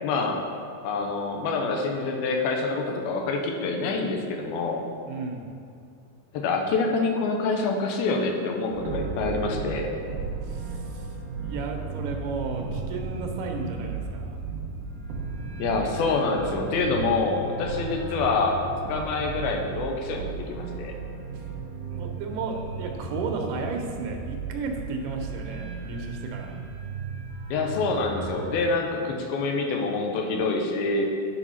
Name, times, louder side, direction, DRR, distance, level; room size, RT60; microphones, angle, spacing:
voice 1, 0.0-0.4 0.8-4.8 6.3-9.9 15.6-18.6 18.9-21.0 27.5-31.0, left 3 dB, 80° left, 2 dB, 2.6 m, -26 dB
voice 2, 5.1-5.5 10.5-11.1 11.4-14.4 21.3-21.4 21.9-26.6, right 4 dB, 90° right, 2 dB, 3.0 m, -33 dB
sound 1, 8.7-28.6, right 4 dB, 60° right, 1.8 m, -35 dB
9.8 x 4.9 x 5.6 m, 2.4 s
omnidirectional pair, 4.5 m